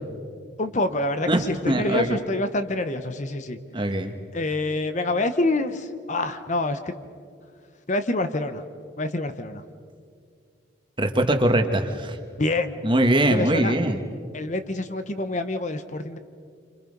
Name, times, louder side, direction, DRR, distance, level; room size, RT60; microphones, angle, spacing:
voice 1, 0.6-3.6 4.3-6.9 7.9-8.6 9.0-9.6 12.4-12.8 13.3-13.7 14.3-16.2, left 2 dB, 40° left, 9 dB, 0.9 m, -26 dB
voice 2, 1.3-2.2 3.7-4.1 11.0-12.2 12.8-14.0, right 1 dB, 25° right, 5 dB, 1.5 m, -22 dB
28.5 x 26.0 x 5.4 m, 2.2 s
head